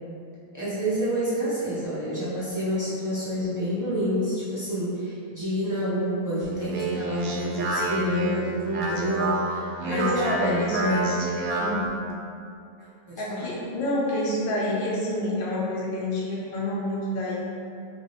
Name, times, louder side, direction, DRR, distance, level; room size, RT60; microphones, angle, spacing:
voice 1, 0.5-11.1 13.1-13.4, equal, 25° right, -11 dB, 0.4 m, -28 dB
Speech, 6.4-11.9, right 2 dB, 75° right, 1.0 m, -29 dB
voice 2, 9.9-10.9 11.6-11.9 13.2-17.3, left 1 dB, 50° left, -5 dB, 0.6 m, -28 dB
3.4 x 2.8 x 3.1 m, 2.5 s
omnidirectional pair, 1.6 m